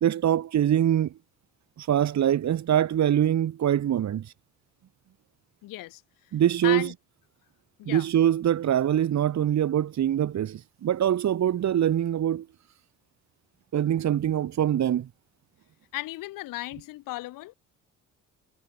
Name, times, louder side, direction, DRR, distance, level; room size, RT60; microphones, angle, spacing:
voice 1, 0.0-1.1 1.8-4.3 6.3-6.9 7.8-12.4 13.7-15.1, right 10 dB, 60° right, 1.5 m, -24 dB
voice 2, 5.6-6.0 6.6-6.9 7.8-8.1 15.9-17.5, left 18 dB, 80° left, 8.0 m, -35 dB
supercardioid pair, 55°, 32 cm